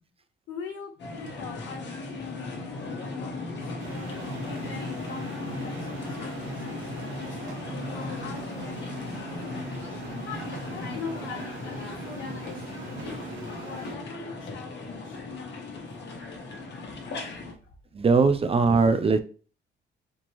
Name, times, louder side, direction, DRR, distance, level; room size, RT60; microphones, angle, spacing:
voice 1, 0.5-7.6 7.9-13.1 13.6-16.5 17.2-17.4, left 5 dB, 85° left, 0 dB, 1.3 m, -43 dB
sound 1, 1.0-17.5, left 3 dB, 60° left, 1.2 m, -37 dB
sound 2, 3.8-13.9, right 5 dB, 85° right, 1.0 m, -42 dB
voice 2, 17.9-19.2, right 4 dB, 30° right, 9 dB, 0.5 m, -20 dB
4.4 x 2.9 x 3.0 m, 0.39 s
cardioid pair, 90°, 20 cm